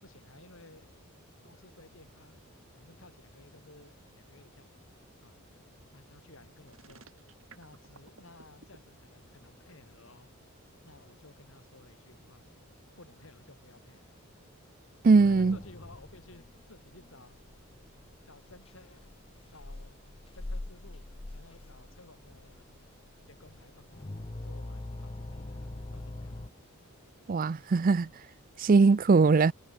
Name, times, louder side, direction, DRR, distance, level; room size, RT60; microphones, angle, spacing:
voice 1, 0.0-0.9 1.4-2.4 2.8-4.9 5.2-5.4 5.9-7.1 7.5-10.3 10.8-12.4 13.0-14.2 15.2-17.4 18.3-19.1 19.5-20.0 20.3-21.1 21.3-22.7 23.3-24.1 24.4-26.4 28.7-29.0, left 2 dB, 60° left, 5.3 m, -56 dB
sound 1, 6.6-8.8, right 4 dB, 65° right, 3.2 m, -54 dB
voice 2, 15.0-15.6 27.3-28.1 28.6-29.5, right 4 dB, 40° right, 0.4 m, -21 dB
sound 2, 15.1-26.5, left 2 dB, 25° left, 0.6 m, -43 dB
head